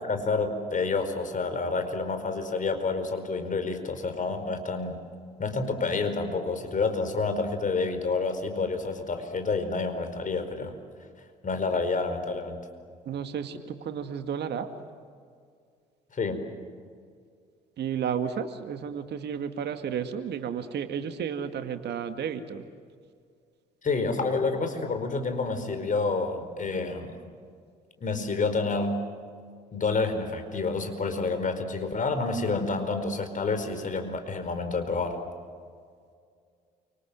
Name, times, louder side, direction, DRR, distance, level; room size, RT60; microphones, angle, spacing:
voice 1, 0.0-5.0 5.4-10.7 11.4-12.6 16.1-16.4 23.8-27.2 28.0-29.0 29.7-35.2, left 3 dB, 40° left, 7 dB, 4.9 m, -29 dB
voice 2, 13.1-14.7 17.8-22.7, right 7 dB, 55° right, 8 dB, 2.1 m, -32 dB
29.5 x 26.0 x 7.8 m, 2.2 s
hypercardioid pair, 55°, 21 cm